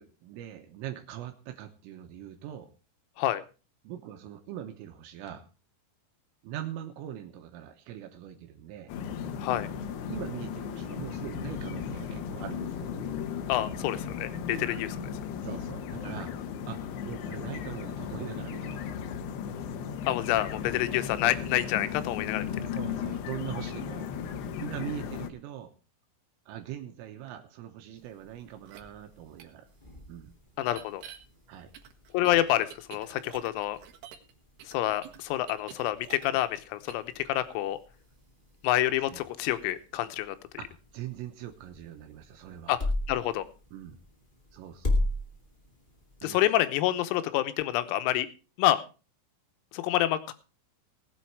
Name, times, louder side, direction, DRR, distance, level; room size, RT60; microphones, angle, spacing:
voice 1, 0.0-2.7 3.8-5.5 6.4-8.9 10.1-12.9 14.5-14.6 15.4-16.3 16.7-18.9 22.8-24.1 24.6-25.7 26.5-29.7 30.1-30.3 31.5-31.7 40.6-42.7 43.7-44.0 44.5-45.0 46.2-46.4, right 11 dB, 80° right, 5 dB, 3.6 m, -41 dB
sound 1, 8.9-25.3, left 7 dB, 70° left, 2.6 m, -36 dB
voice 2, 13.5-15.0 20.1-22.5 30.6-31.0 32.1-33.8 34.7-37.8 38.6-40.4 42.7-42.8 43.1-43.5 46.2-48.3 48.6-48.8 49.7-50.3, left 14 dB, 90° left, 11 dB, 3.7 m, -28 dB
sound 2, 27.9-46.5, left 1 dB, 50° left, 0.5 m, -39 dB
sound 3, 28.7-28.8 29.4-29.5 30.7-31.2 31.7-34.3 34.6-36.6 36.9-37.1, right 9 dB, 65° right, 3.2 m, -48 dB
19.0 x 8.2 x 4.7 m, 0.34 s
omnidirectional pair, 6.0 m